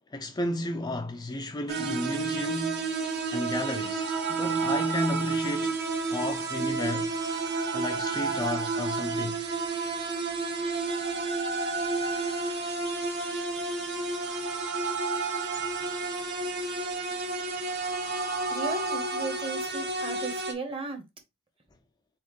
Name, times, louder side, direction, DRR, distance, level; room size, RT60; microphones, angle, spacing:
voice 1, 0.1-2.9 3.3-5.8 6.1-7.1 7.7-9.4, left 1 dB, 20° left, 0.4 m, -33 dB
sound 1, 1.7-20.5, right 3 dB, 55° right, 1.1 m, -30 dB
voice 2, 18.5-21.0, right 3 dB, 25° right, 1.1 m, -36 dB
4.2 x 4.1 x 3.1 m
head